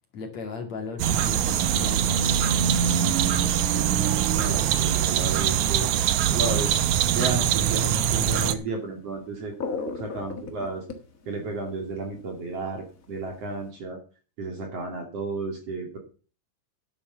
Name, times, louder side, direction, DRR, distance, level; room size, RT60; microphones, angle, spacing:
voice 1, 0.1-3.9, left 5 dB, 50° left, 2 dB, 3.4 m, -38 dB
sound 1, 1.0-8.6, right 9 dB, 75° right, 1.8 m, -23 dB
voice 2, 4.3-5.9 6.3-6.7 7.1-9.5 9.9-10.8 11.3-14.0 14.4-16.0, right 3 dB, 45° right, 3 dB, 3.3 m, -32 dB
sound 2, 8.8-8.9 9.2-12.6 13.0-13.7, left 4 dB, 70° left, 0.7 m, -34 dB
10.5 x 8.9 x 6.9 m, 0.38 s
omnidirectional pair, 4.2 m